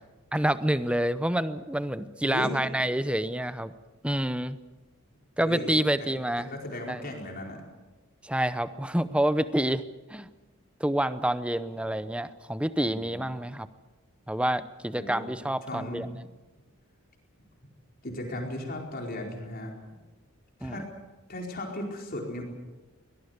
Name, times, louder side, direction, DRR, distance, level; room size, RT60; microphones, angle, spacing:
voice 1, 0.3-3.7 4.0-4.6 5.4-6.5 6.9-7.0 8.2-9.8 10.1-10.3 10.8-13.7 14.3-16.1 20.6-20.8, right 1 dB, 5° right, 13 dB, 0.7 m, -28 dB
voice 2, 2.2-2.6 5.4-5.7 6.0-6.1 6.5-7.6 12.9-13.3 14.9-15.3 15.6-16.1 18.0-19.7 20.6-20.9 21.3-22.4, left 1 dB, 45° left, 0 dB, 4.5 m, -36 dB
23.0 x 18.5 x 8.1 m, 1.2 s
head